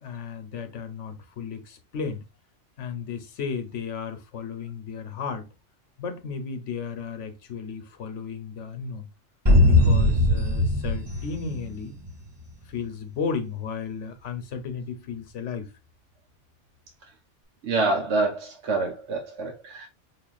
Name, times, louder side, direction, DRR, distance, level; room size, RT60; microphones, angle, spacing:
voice 1, 0.0-2.2 2.8-5.5 6.0-9.1 9.7-12.0 12.7-15.7, left 6 dB, 80° left, 1.1 m, -34 dB
sound 1, 9.5-12.2, left 1 dB, 25° right, 0.8 m, -20 dB
voice 2, 17.6-19.9, right 3 dB, 75° right, 1.0 m, -26 dB
5.6 x 2.4 x 2.3 m
omnidirectional pair, 1.2 m